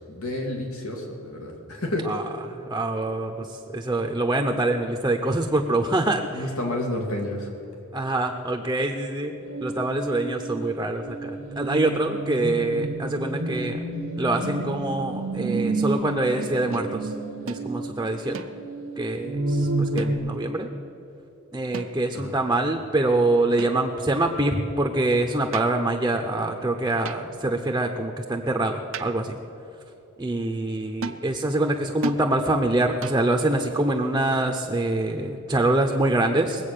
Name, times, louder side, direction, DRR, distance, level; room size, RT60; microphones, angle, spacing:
voice 1, 0.1-2.1 6.3-7.5 22.1-22.4, left 1 dB, 85° left, 1 dB, 2.2 m, -30 dB
voice 2, 2.0-6.5 7.9-9.3 9.6-13.8 14.2-17.1 17.5-18.4 19.0-20.7 21.5-29.4 30.2-36.7, right 2 dB, 15° right, 3 dB, 0.7 m, -25 dB
sound 1, 9.4-20.2, right 2 dB, 90° right, 1.3 m, -30 dB
sound 2, 16.7-16.9 17.5-17.7 18.3-18.8 20.0-20.4 21.7-22.3 23.6-24.1 25.5-25.9 27.0-27.5 28.9-29.4 31.0-31.3 32.0-32.3 33.0-33.4, right 4 dB, 65° right, 0.6 m, -36 dB
20.5 x 8.2 x 6.7 m, 3.0 s
head